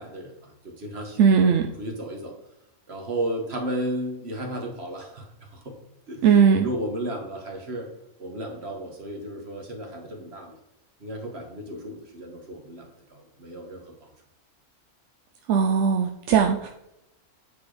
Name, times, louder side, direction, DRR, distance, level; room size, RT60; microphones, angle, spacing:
voice 1, 0.0-1.2 1.8-2.3 2.9-5.8 6.1-6.3 6.6-7.9 8.2-10.6 11.0-14.1, right 1 dB, 45° right, 2 dB, 1.8 m, -34 dB
voice 2, 1.2-1.7 6.2-6.7 15.5-16.7, right 6 dB, 65° right, 4 dB, 0.8 m, -19 dB
9.4 x 4.4 x 5.0 m, 0.86 s
omnidirectional pair, 1.6 m